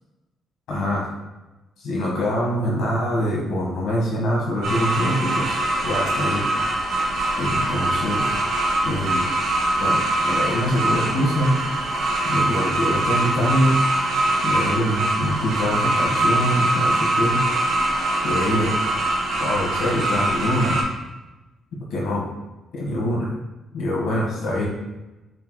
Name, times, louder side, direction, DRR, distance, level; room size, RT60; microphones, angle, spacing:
voice 1, 0.7-1.1 1.8-5.6 5.8-6.4 7.4-8.3 8.8-9.2 9.8-11.5 12.3-13.8 14.4-17.4 18.2-18.7 19.4-20.8 21.9-22.2 22.7-23.3 23.7-24.7, equal, 80° left, -3 dB, 1.6 m, -24 dB
sound 1, 4.6-20.8, right 2 dB, 90° right, 1.1 m, -23 dB
6.9 x 3.3 x 2.2 m, 1.0 s
cardioid pair, 90°, 0 cm